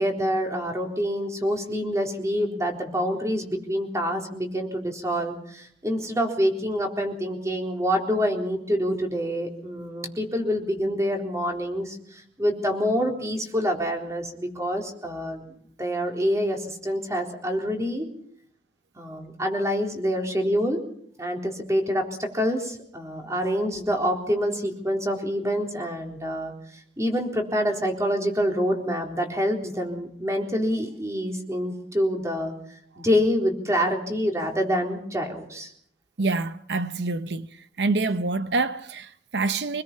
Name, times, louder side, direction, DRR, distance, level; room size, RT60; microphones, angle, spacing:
voice 1, 0.0-15.4 15.8-18.1 19.0-20.8 21.2-26.5 27.0-32.5 33.0-35.7, equal, 15° right, 3.9 m, -26 dB
voice 2, 36.2-37.5 37.8-39.8, right 3 dB, 75° right, 0.8 m, -26 dB
26.0 x 20.5 x 5.6 m
head